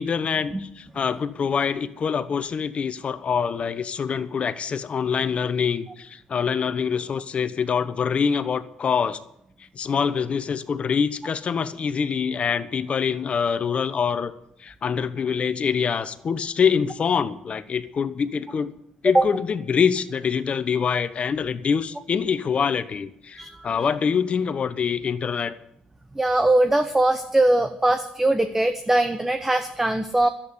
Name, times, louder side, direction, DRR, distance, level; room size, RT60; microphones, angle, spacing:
voice 1, 0.0-9.2 9.7-14.3 14.6-18.7 19.0-25.6, left 6 dB, 45° left, 13 dB, 1.0 m, -25 dB
voice 2, 23.4-23.9 26.1-30.3, right 1 dB, 15° right, 7 dB, 1.0 m, -21 dB
11.5 x 8.7 x 9.5 m, 0.77 s
supercardioid pair, 75°, 3 cm